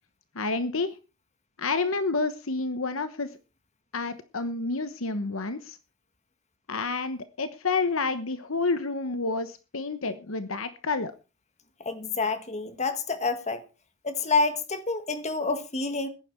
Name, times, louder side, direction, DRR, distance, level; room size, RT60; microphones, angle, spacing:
voice 1, 0.3-0.9 1.6-3.3 3.9-5.8 6.7-11.1, left 3 dB, 65° left, 1.1 m, -29 dB
voice 2, 11.8-13.6 14.0-16.1, left 3 dB, 30° left, 1.7 m, -28 dB
15.0 x 10.5 x 4.5 m
head